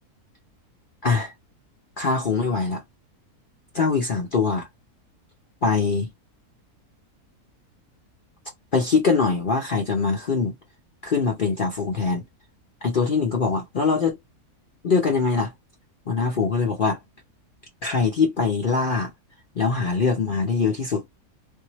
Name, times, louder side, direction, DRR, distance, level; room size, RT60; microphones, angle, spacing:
voice 1, 2.0-2.8 3.7-4.7 5.6-6.1 8.7-10.5 11.0-12.2 12.8-14.2 14.8-15.5 16.1-17.0 17.8-19.1 19.6-21.0, left 4 dB, 45° left, 0.7 m, -22 dB
3.6 x 2.7 x 3.0 m
omnidirectional pair, 1.6 m